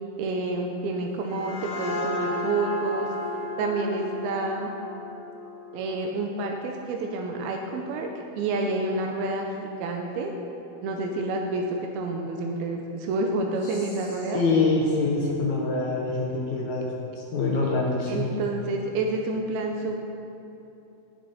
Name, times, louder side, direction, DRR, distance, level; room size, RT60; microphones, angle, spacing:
voice 1, 0.2-3.1 3.6-4.7 5.7-9.5 9.8-10.3 10.8-14.4 18.1-20.0, right 2 dB, 85° right, 2 dB, 2.6 m, -29 dB
sound 1, 1.1-6.5, left 1 dB, 90° left, 3.2 m, -34 dB
voice 2, 14.3-16.9 17.3-18.2, left 3 dB, 65° left, -2 dB, 2.1 m, -25 dB
18.0 x 7.0 x 4.2 m, 2.9 s
omnidirectional pair, 4.4 m